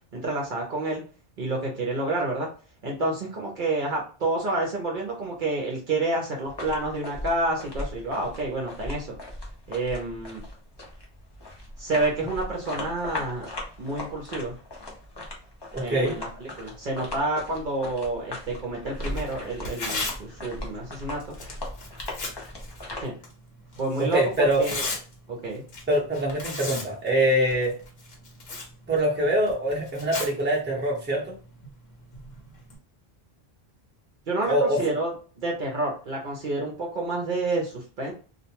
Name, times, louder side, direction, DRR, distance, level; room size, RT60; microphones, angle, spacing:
voice 1, 0.1-1.0 1.4-2.5 2.8-9.1 9.7-10.4 11.8-13.5 13.8-14.5 15.8-21.4 23.0-23.1 23.8-24.2 24.6-24.8 25.3-25.6 34.3-35.1 35.4-38.1, right 2 dB, 55° right, -1 dB, 0.8 m, -29 dB
sound 1, 6.4-23.0, left 1 dB, 30° left, 0.6 m, -38 dB
voice 2, 15.7-16.1 24.0-24.6 25.9-27.7 28.9-31.3 34.5-34.8, right 1 dB, 10° right, -4 dB, 0.8 m, -24 dB
Tearing, 18.9-32.8, left 3 dB, 75° left, 1.1 m, -39 dB
2.5 x 2.2 x 2.8 m, 0.38 s
omnidirectional pair, 1.1 m